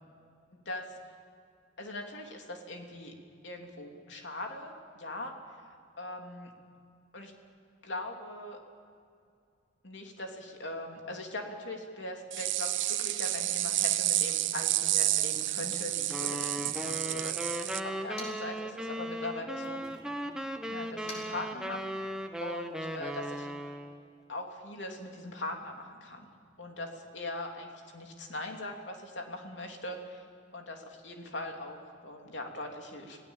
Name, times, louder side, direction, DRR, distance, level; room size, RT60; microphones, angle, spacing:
voice 1, 0.5-0.9 1.8-3.1 3.4-5.3 5.6-6.5 7.1-7.3 7.8-8.6 9.8-19.8 20.7-21.8 22.4-23.5 24.3-26.3 26.6-30.3 30.5-33.2, left 1 dB, 65° left, 2 dB, 3.1 m, -41 dB
sound 1, 12.3-17.8, right 14 dB, 70° right, 0.8 m, -30 dB
Motor vehicle (road), 14.2-18.7 19.0-22.2, left 1 dB, 35° left, 5.1 m, -53 dB
sound 2, 16.1-24.0, equal, 5° right, 1.1 m, -37 dB
26.5 x 17.5 x 7.3 m, 2.4 s
head